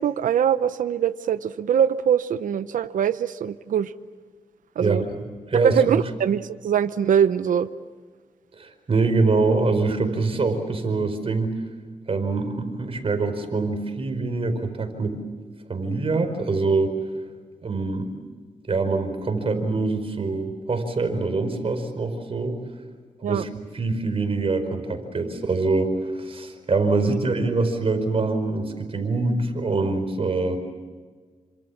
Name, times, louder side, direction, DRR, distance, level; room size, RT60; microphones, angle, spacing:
voice 1, 0.0-3.9 4.8-5.0 5.6-7.7 23.2-23.5 27.1-27.2, right 8 dB, 85° right, 12 dB, 0.8 m, -22 dB
voice 2, 5.5-6.0 8.6-11.5 12.1-15.2 15.7-16.9 17.6-18.1 18.7-22.6 23.2-23.5 23.7-30.6, right 3 dB, 45° right, 7 dB, 4.9 m, -24 dB
28.5 x 26.0 x 7.3 m, 1.5 s
cardioid pair, 100°, 13 cm